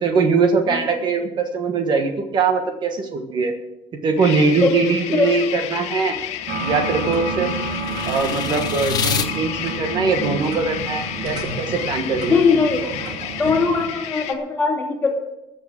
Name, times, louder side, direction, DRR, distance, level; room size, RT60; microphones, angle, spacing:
voice 1, 0.0-3.5 4.0-6.2 6.6-7.5 8.0-12.3, right 4 dB, 40° right, 5 dB, 1.4 m, -21 dB
sound 1, 4.2-14.3, left 11 dB, 75° left, 1.1 m, -31 dB
sound 2, 5.7-9.3, left 7 dB, 35° left, 1.0 m, -29 dB
sound 3, 6.5-13.8, right 3 dB, 65° right, 2.7 m, -30 dB
voice 2, 12.3-12.8 13.4-15.1, left 4 dB, 15° left, 1 dB, 2.5 m, -19 dB
14.5 x 6.7 x 7.5 m, 0.95 s
cardioid pair, 160°, 12 cm